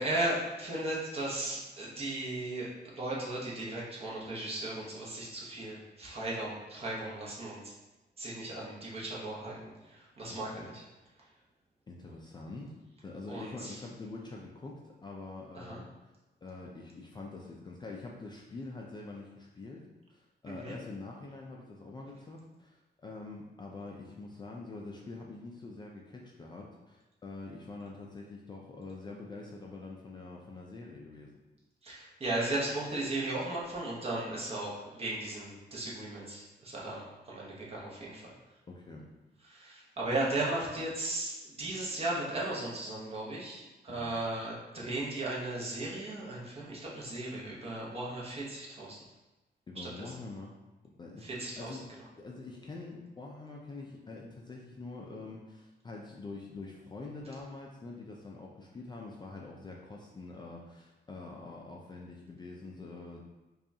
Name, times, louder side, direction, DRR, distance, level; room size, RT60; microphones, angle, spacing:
voice 1, 0.0-7.7 8.2-10.8 13.3-13.8 15.5-15.8 20.5-20.7 31.8-38.3 39.5-41.3 41.6-49.0 49.8-50.1 51.2-51.8, right 2 dB, 35° right, -5 dB, 0.9 m, -36 dB
voice 2, 11.9-12.7 13.0-15.9 16.4-31.3 38.7-39.1 43.9-44.1 49.7-50.6 51.0-51.8 52.2-63.2, left 3 dB, 25° left, -1 dB, 0.3 m, -45 dB
5.1 x 2.3 x 2.7 m, 1.1 s
wide cardioid pair, 165°, 18 cm